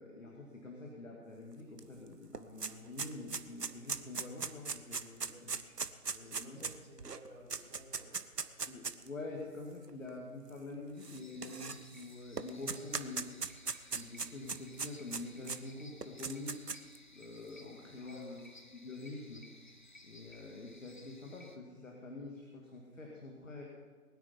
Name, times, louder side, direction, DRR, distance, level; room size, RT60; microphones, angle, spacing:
voice 1, 0.0-5.5 6.1-6.6 8.7-13.3 13.9-16.8 17.1-18.4 18.7-19.4 20.0-23.6, left 2 dB, 55° left, -1 dB, 2.4 m, -46 dB
sound 1, 1.8-1.9 2.1-9.1 9.8-9.9 11.0-12.0 12.4-15.6 16.0-17.0, right 5 dB, 85° right, 1.0 m, -39 dB
voice 2, 5.1-5.4 6.2-8.5 18.0-18.3, right 1 dB, 5° right, -12 dB, 3.1 m, -55 dB
sound 2, 10.9-21.6, left 2 dB, 30° left, 0.8 m, -58 dB
20.0 x 9.8 x 5.6 m, 1.5 s
figure-of-eight pair, 155°, 46 cm